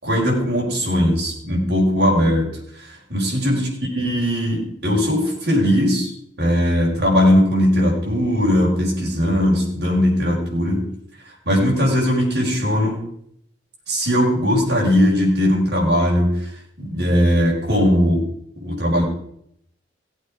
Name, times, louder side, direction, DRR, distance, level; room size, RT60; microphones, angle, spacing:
voice 1, 0.0-2.5 2.8-3.7 3.9-6.1 6.4-10.9 11.5-13.1 13.9-16.4 16.8-18.3 18.6-19.0, equal, 65° right, -3 dB, 4.7 m, -19 dB
17.5 x 8.4 x 4.9 m, 0.71 s
head